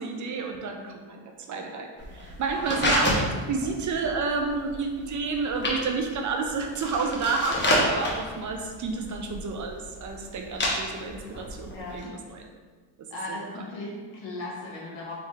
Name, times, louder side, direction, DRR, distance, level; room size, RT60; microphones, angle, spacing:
voice 1, 0.0-12.5 13.0-13.4, right 4 dB, 40° right, 3 dB, 0.5 m, -30 dB
sound 1, 2.0-12.0, left 1 dB, 25° left, 1.0 m, -30 dB
voice 2, 11.7-12.1 13.1-15.2, left 2 dB, 70° left, -3 dB, 1.4 m, -37 dB
3.4 x 3.4 x 3.2 m, 1.4 s
cardioid pair, 90°, 45 cm